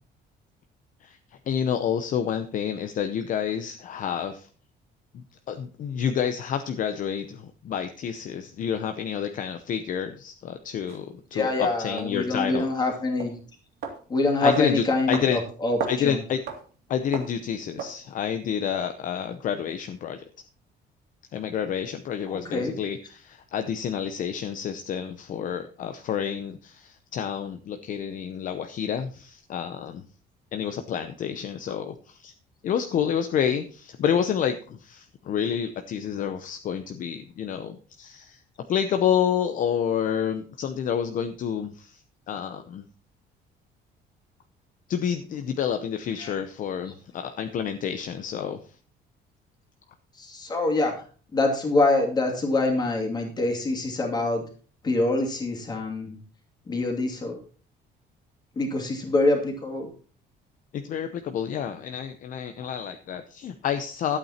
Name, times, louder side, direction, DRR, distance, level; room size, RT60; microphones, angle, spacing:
voice 1, 1.0-4.5 5.1-12.7 14.4-15.4 15.9-16.4 16.9-20.2 21.3-30.0 30.5-32.3 32.6-38.4 38.7-42.0 42.3-42.8 44.9-48.7 60.7-64.2, left 8 dB, 45° left, 8 dB, 0.8 m, -29 dB
sound 1, 10.9-11.0 12.0-12.1 12.6-12.7 13.2-13.4 13.8-14.0 14.5-14.7 15.1-15.3 15.6-16.0 16.5-16.6 17.1-17.4 17.8-18.0, right 6 dB, 60° right, 2.4 m, -32 dB
voice 2, 11.3-13.4 14.1-15.8 16.0-16.2 22.3-22.7 46.2-46.4 50.2-50.9 51.3-54.4 54.8-56.2 56.7-57.3 58.6-59.9, left 2 dB, 20° left, 2 dB, 2.7 m, -25 dB
12.0 x 8.6 x 4.3 m, 0.40 s
cardioid pair, 180°, 19 cm